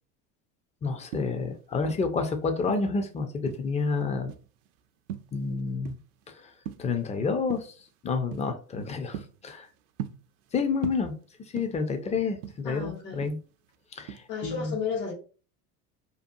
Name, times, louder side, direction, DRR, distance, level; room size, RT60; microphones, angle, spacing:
voice 1, 0.8-4.3 5.3-6.0 6.3-6.5 6.8-7.7 8.0-9.7 10.5-11.2 11.5-13.4 14.0-14.7, left 4 dB, 15° left, 0.4 m, -29 dB
sound 1, 0.9-2.2 2.6-3.9 4.3-4.7 5.1-6.2 6.5-7.1 7.5-7.8 8.3-8.5 8.9-10.5 10.8-12.0 12.3-13.8 14.1-14.4, right 10 dB, 70° right, 0.5 m, -39 dB
voice 2, 12.6-13.3 14.3-15.1, left 6 dB, 85° left, 1.2 m, -33 dB
2.7 x 2.3 x 2.6 m
hypercardioid pair, 75°, 47 cm